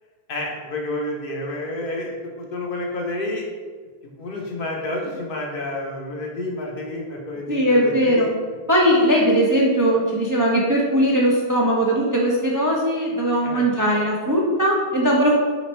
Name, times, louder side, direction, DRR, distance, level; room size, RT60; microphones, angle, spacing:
voice 1, 0.3-3.5 4.2-8.3 13.4-13.6, left 1 dB, 60° left, -1 dB, 0.9 m, -29 dB
voice 2, 7.5-8.3 8.7-15.3, equal, 30° right, -4 dB, 0.4 m, -19 dB
3.3 x 3.0 x 4.3 m, 1.5 s
omnidirectional pair, 1.1 m